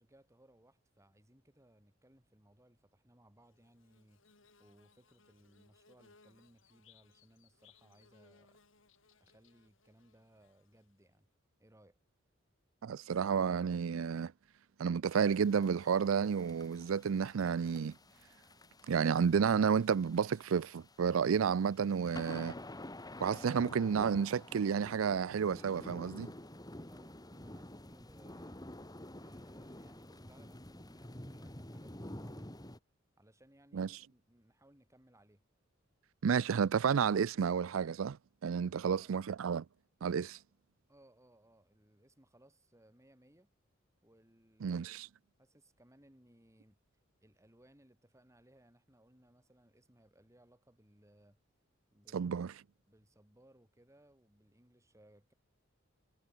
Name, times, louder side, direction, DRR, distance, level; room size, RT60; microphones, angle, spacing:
voice 1, 0.0-4.2 4.6-8.6 9.2-11.3 11.6-12.0 26.9-28.8 29.2-32.5 33.2-35.4 38.5-39.1 40.9-43.5 44.0-44.8 45.4-46.8 47.2-51.4 51.9-52.3 52.9-55.3, right 1 dB, 15° right, 4.2 m, -65 dB
Bird / Buzz, 3.4-11.1, left 5 dB, 70° left, 4.4 m, -67 dB
voice 2, 12.8-14.3 14.8-17.9 18.9-22.6 23.2-26.3 33.7-33.9 36.2-38.2 38.4-39.6 40.0-40.4 44.6-45.1 52.1-52.5, right 6 dB, 90° right, 0.4 m, -31 dB
sound 1, 15.1-32.8, left 1 dB, 20° left, 2.7 m, -50 dB
head